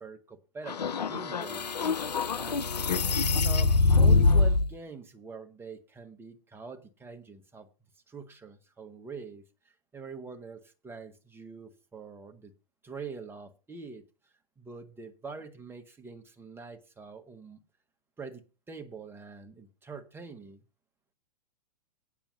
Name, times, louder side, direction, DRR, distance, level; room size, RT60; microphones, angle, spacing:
voice 1, 0.0-1.8 2.3-2.7 3.3-7.7 8.1-9.4 9.9-12.5 12.8-14.0 14.6-17.6 18.2-20.6, right 4 dB, 10° right, 1.2 m, -44 dB
sound 1, 0.7-4.7, left 3 dB, 85° left, 0.7 m, -24 dB
8.8 x 7.1 x 6.2 m
hypercardioid pair, 115°, 20 cm